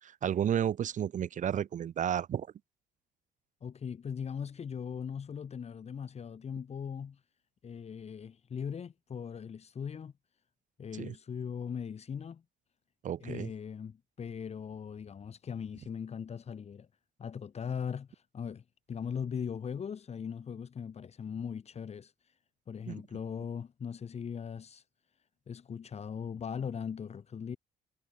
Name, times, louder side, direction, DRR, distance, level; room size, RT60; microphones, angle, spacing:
voice 1, 0.0-2.5 11.0-11.1 13.0-13.5 22.9-23.0, right 9 dB, 50° right, 1.3 m, -32 dB
voice 2, 3.6-7.2 7.6-10.1 10.8-12.4 13.2-16.9 17.2-22.4 22.7-24.8 25.5-27.6, left 7 dB, 40° left, 4.3 m, -39 dB
cardioid pair, 110°, 17 cm